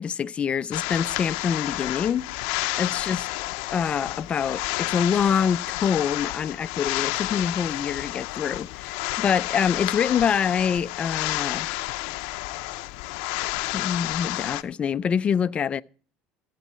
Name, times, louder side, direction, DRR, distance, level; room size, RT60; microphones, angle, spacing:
voice 1, 0.0-2.2 2.8-3.3 3.7-11.8 13.6-15.8, left 7 dB, 30° left, 0.4 m, -25 dB
sound 1, 0.7-14.6, left 21 dB, 85° left, 0.6 m, -30 dB
15.5 x 8.4 x 4.3 m
cardioid pair, 115°, 4 cm